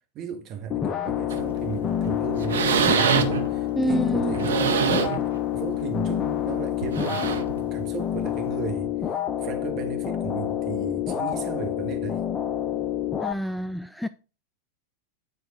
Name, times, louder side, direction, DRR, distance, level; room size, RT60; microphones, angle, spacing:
voice 1, 0.1-12.2, right 6 dB, 35° right, 1.7 m, -35 dB
sound 1, 0.7-13.3, left 11 dB, 30° left, 0.7 m, -28 dB
sound 2, 1.3-1.6 2.0-2.2 2.4-3.5 4.2-5.3 5.7-5.9 6.8-7.6 8.6-8.7, right 7 dB, 65° right, 1.0 m, -24 dB
voice 2, 3.8-4.5 13.2-14.1, equal, ahead, 0.3 m, -27 dB
9.6 x 4.4 x 5.0 m
figure-of-eight pair, 90°, 0 cm